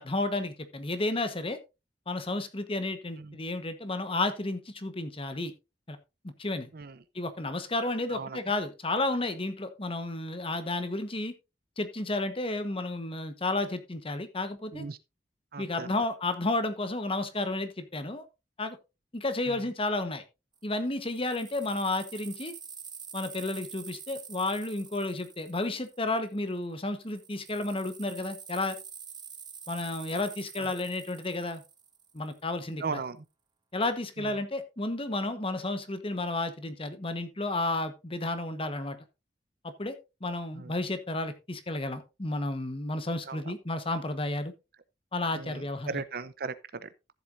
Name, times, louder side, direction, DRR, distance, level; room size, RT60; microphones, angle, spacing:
voice 1, 0.0-1.6 2.1-5.5 5.9-6.0 6.2-6.7 7.1-11.3 11.8-14.8 15.6-18.2 18.6-18.8 19.1-20.2 20.6-22.5 23.1-28.8 29.7-31.6 32.1-33.0 33.7-39.0 39.8-40.0 40.2-44.5 45.1-45.9, left 2 dB, 30° left, 1.2 m, -32 dB
voice 2, 8.1-8.4 14.7-15.0 15.5-15.9 19.5-19.6 30.6-30.7 32.8-33.3 34.2-34.4 40.5-40.7 43.3-43.5 45.3-46.9, right 4 dB, 60° right, 0.7 m, -38 dB
sound 1, 20.5-26.5 27.0-32.4, right 7 dB, 25° right, 1.4 m, -47 dB
14.0 x 7.8 x 2.6 m
head